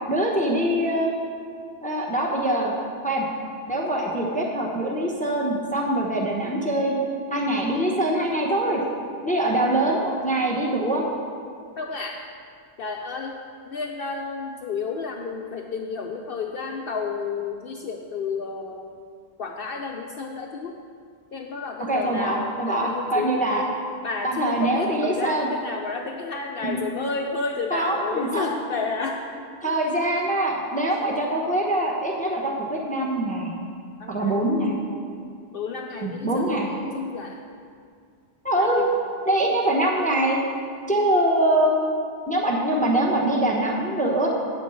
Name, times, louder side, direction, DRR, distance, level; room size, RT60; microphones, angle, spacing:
voice 1, 0.1-1.1 1.8-2.8 3.0-3.3 3.7-6.9 7.3-8.8 9.2-11.0 21.8-23.6 24.2-25.5 26.6-26.8 27.7-28.5 29.6-33.6 34.1-34.7 36.0-36.7 38.4-38.8 39.3-40.4 40.9-41.7 42.3-44.3, right 1 dB, 10° left, -2 dB, 1.0 m, -23 dB
voice 2, 11.8-12.2 12.8-13.4 13.6-18.9 19.4-20.7 21.3-23.6 24.0-29.7 34.0-34.5 35.5-37.4 38.6-38.9, left 4 dB, 60° left, 2 dB, 0.8 m, -31 dB
9.3 x 6.0 x 7.1 m, 2.3 s
omnidirectional pair, 1.1 m